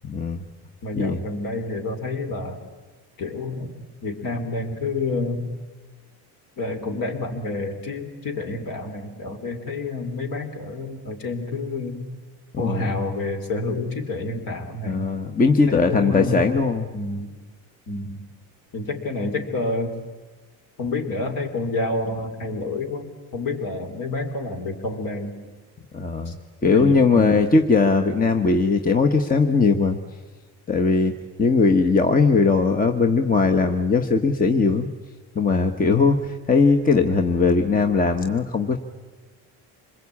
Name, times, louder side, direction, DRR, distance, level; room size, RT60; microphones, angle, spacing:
voice 1, 0.0-0.4 0.9-1.2 12.5-12.9 14.8-16.9 25.9-26.3 26.6-30.0 30.7-34.9 35.3-38.8, left 4 dB, 20° left, 5 dB, 1.2 m, -19 dB
voice 2, 0.8-2.6 3.2-5.5 6.6-12.1 12.6-15.1 15.7-16.5 16.9-17.3 17.9-18.2 18.7-19.9 20.8-25.4 26.3-26.4 26.7-27.4, left 2 dB, 50° left, 5 dB, 3.6 m, -28 dB
26.0 x 21.5 x 8.5 m, 1.3 s
cardioid pair, 110°, 42 cm